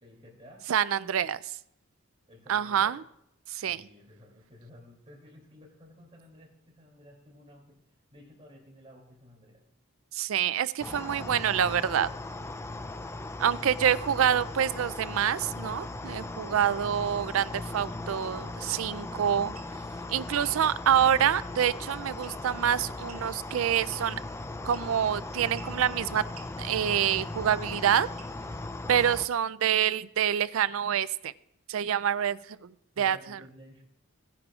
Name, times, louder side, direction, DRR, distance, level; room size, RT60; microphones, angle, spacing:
voice 1, 0.0-0.7 2.3-3.0 3.7-7.8 8.1-9.6 13.5-14.0 32.9-33.8, equal, 25° right, -1 dB, 2.7 m, -53 dB
voice 2, 0.7-1.4 2.5-3.0 3.5-3.8 10.1-12.1 13.4-19.5 20.1-24.2 24.6-26.2 26.6-28.1 28.9-31.3 31.7-33.4, right 9 dB, 65° right, 18 dB, 0.4 m, -27 dB
sound 1, 10.8-29.3, left 2 dB, 10° left, 0.3 m, -38 dB
sound 2, 18.7-18.9 19.5-19.7 20.4-20.6 22.2-22.6 23.1-23.3 23.9-24.2 24.7-25.1 25.5-25.8 26.3-26.5 27.2-27.5 28.2-28.4 29.3-29.6, right 8 dB, 85° right, 1.1 m, -52 dB
17.5 x 9.9 x 2.4 m, 0.77 s
head